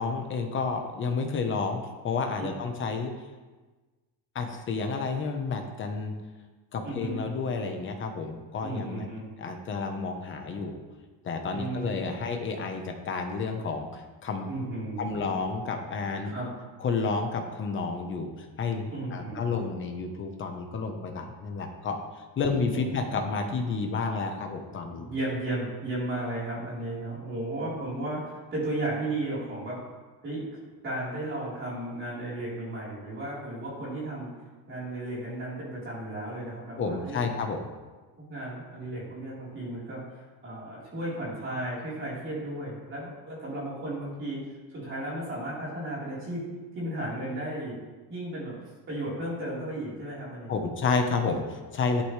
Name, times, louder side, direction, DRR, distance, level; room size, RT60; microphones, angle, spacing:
voice 1, 0.0-1.8 2.0-3.1 4.3-6.1 6.7-9.1 9.4-10.8 11.2-14.5 15.0-16.3 16.8-22.0 22.4-25.1 36.8-37.6 50.5-52.0, left 4 dB, 25° left, 4 dB, 1.0 m, -30 dB
voice 2, 6.8-7.4 8.6-9.3 11.5-12.0 14.5-15.1 16.2-16.5 18.9-19.5 22.4-22.5 22.7-22.9 24.9-29.8 30.2-30.5 30.8-34.3 34.7-37.2 38.2-44.4 44.7-46.4 46.7-47.8 48.1-48.5 48.9-50.5, right 1 dB, 25° right, -7 dB, 4.0 m, -34 dB
13.0 x 11.5 x 3.3 m, 1.3 s
cardioid pair, 180°, 45 cm